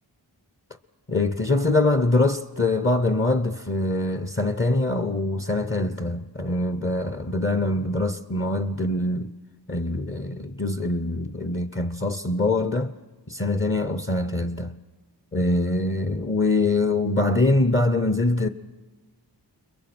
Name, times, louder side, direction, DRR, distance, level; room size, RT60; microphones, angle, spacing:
voice 1, 1.1-9.4 9.7-12.9 13.3-14.8 15.3-18.5, left 2 dB, 30° left, 0.8 m, -24 dB
30.0 x 22.0 x 6.1 m
wide cardioid pair, 55°, 44 cm